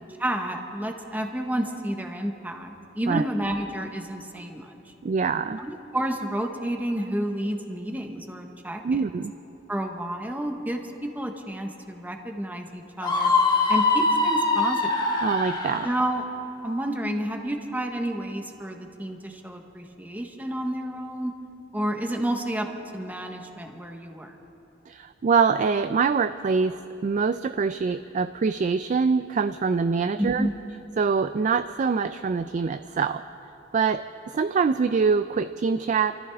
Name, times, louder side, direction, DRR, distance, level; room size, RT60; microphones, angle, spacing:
voice 1, 0.2-4.7 5.6-9.0 9.7-10.8 11.1-13.3 13.7-15.0 15.8-16.2 16.6-21.3 21.7-22.7 22.9-24.4 30.2-30.5, right 1 dB, 10° right, 3 dB, 1.1 m, -30 dB
voice 2, 5.0-5.6 8.8-9.3 15.2-15.9 24.9-30.5 31.0-33.2 33.7-36.1, right 5 dB, 40° right, 11 dB, 0.3 m, -24 dB
Screaming, 13.0-16.0, left 3 dB, 25° left, 1.3 m, -23 dB
28.0 x 14.0 x 3.5 m, 3.0 s
head